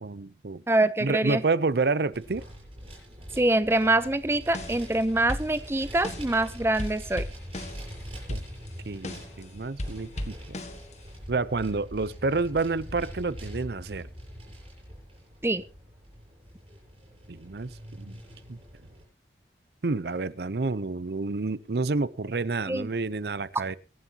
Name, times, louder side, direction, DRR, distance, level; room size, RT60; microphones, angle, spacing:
voice 1, 0.0-0.6 1.0-2.4 8.3-8.4 8.8-10.6 11.3-14.1 17.3-18.1 18.5-18.6 19.8-23.8, right 3 dB, 65° right, 0.6 m, -29 dB
voice 2, 0.7-1.4 3.4-7.3 15.4-15.6 22.7-22.9, right 2 dB, 15° right, 0.6 m, -24 dB
Vehicle, 2.1-19.0, equal, 35° right, 7.5 m, -44 dB
sound 1, 4.4-5.0 5.3-6.4 6.8-9.4 9.8-11.2, left 1 dB, 40° left, 1.6 m, -37 dB
23.5 x 11.0 x 2.9 m
head